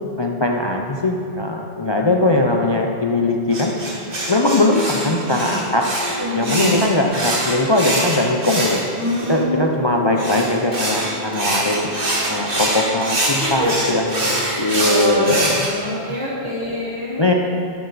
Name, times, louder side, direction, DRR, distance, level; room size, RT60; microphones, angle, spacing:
voice 1, 0.2-3.7 4.3-5.9 6.2-8.8 9.3-11.9 12.3-15.6 16.4-16.8 17.2-17.3, left 2 dB, 30° left, 1 dB, 0.5 m, -20 dB
voice 2, 1.9-2.3 5.0-5.6 6.2-6.8 9.0-9.7 13.4-13.7 14.4-17.3, equal, 80° right, -8 dB, 3.4 m, -26 dB
sound 1, 3.5-9.4 10.2-15.7, right 1 dB, 55° right, 1.8 m, -24 dB
sound 2, 5.3-14.4, right 1 dB, 40° right, 3.0 m, -34 dB
11.5 x 8.5 x 4.1 m, 2.5 s
omnidirectional pair, 1.1 m